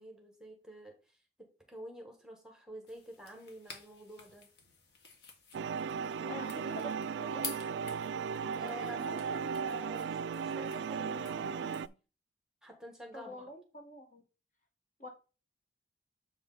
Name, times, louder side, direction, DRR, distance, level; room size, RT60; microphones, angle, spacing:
voice 1, 0.0-4.5 8.1-11.9 12.6-13.5, equal, 5° right, 3 dB, 1.3 m, -49 dB
Playing With Pre-stick, 2.9-11.9, left 5 dB, 65° left, 1.6 m, -50 dB
sound 1, 5.5-11.9, right 6 dB, 85° right, 0.3 m, -36 dB
voice 2, 6.3-6.9 7.2-7.4 13.1-14.2 15.0-15.1, equal, 45° left, 3 dB, 1.5 m, -45 dB
7.2 x 5.0 x 3.9 m, 0.33 s
head